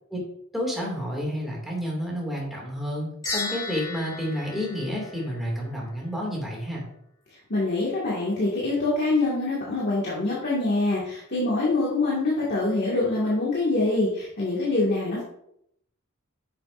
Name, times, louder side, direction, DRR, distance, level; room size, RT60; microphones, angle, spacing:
voice 1, 0.5-6.9, equal, ahead, -4 dB, 2.5 m, -30 dB
sound 1, 3.2-5.7, left 3 dB, 20° left, 2.1 m, -34 dB
voice 2, 7.5-15.2, left 2 dB, 50° left, -6 dB, 2.1 m, -25 dB
10.0 x 7.5 x 2.6 m, 0.74 s
head